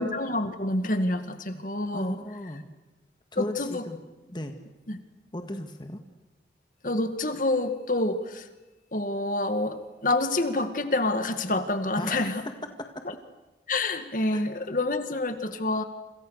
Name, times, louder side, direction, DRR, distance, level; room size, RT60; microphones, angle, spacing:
voice 1, 0.0-2.2 3.4-3.8 4.9-5.0 6.8-8.5 8.9-12.4 13.7-15.8, left 2 dB, 50° left, 8 dB, 2.1 m, -27 dB
voice 2, 1.9-2.6 3.3-4.0 4.3-4.6 5.3-6.0 12.0-12.5 14.3-14.8, left 1 dB, 25° left, 5 dB, 1.8 m, -36 dB
29.5 x 27.0 x 6.6 m, 1.1 s
head